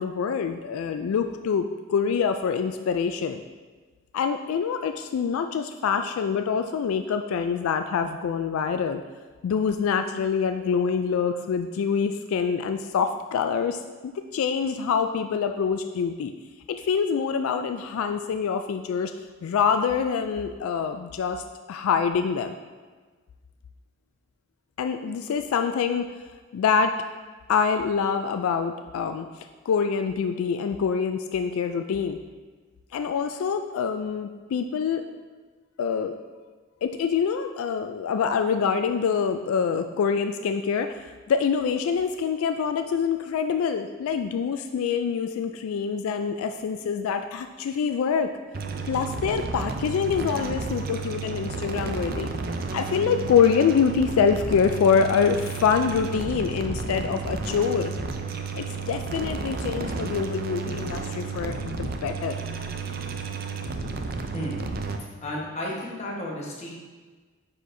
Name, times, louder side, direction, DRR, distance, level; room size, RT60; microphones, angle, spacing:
voice 1, 0.0-3.4 4.1-9.0 9.4-16.3 16.7-19.1 19.4-22.5 24.8-26.1 26.5-27.0 27.5-32.2 32.9-35.1 35.8-36.2 36.8-48.3 48.9-52.3 52.7-57.9 58.6-62.4, left 6 dB, 90° left, 7 dB, 0.3 m, -25 dB
sound 1, 48.5-65.0, right 4 dB, 45° right, 0.4 m, -32 dB
voice 2, 65.2-66.7, left 1 dB, 30° left, -4 dB, 1.2 m, -33 dB
9.5 x 4.3 x 2.6 m, 1.4 s
head